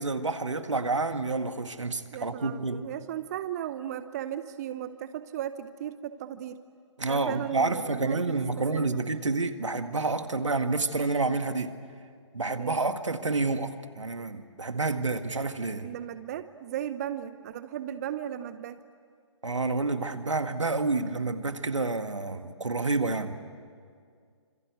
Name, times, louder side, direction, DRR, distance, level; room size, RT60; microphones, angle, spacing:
voice 1, 0.0-2.9 7.0-11.7 12.3-15.9 19.4-23.4, right 3 dB, 80° right, 1.8 m, -29 dB
voice 2, 2.1-6.6 7.1-9.0 12.6-12.8 15.8-18.8, right 10 dB, 35° right, 0.8 m, -36 dB
27.0 x 26.5 x 8.2 m
figure-of-eight pair, 135°, 15 cm